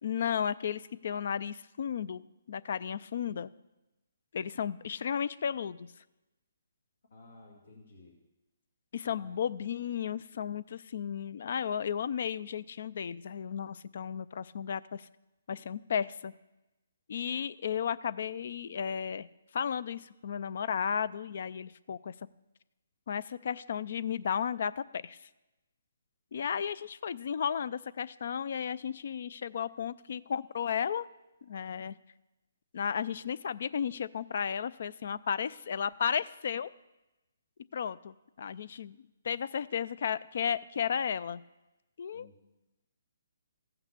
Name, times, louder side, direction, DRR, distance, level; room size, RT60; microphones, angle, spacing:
voice 1, 0.0-3.5 4.3-5.9 8.9-15.1 15.5-16.3 17.1-19.3 19.5-22.1 23.1-25.3 26.3-31.1 31.4-32.0 32.7-36.7 37.7-39.0 39.2-41.4 42.0-42.3, left 7 dB, 55° left, 18 dB, 0.4 m, -34 dB
voice 2, 7.1-8.1 9.1-9.4 42.1-42.3, left 2 dB, 80° left, -1 dB, 2.2 m, -54 dB
15.0 x 5.9 x 6.8 m, 1.0 s
hypercardioid pair, 160°, 0 cm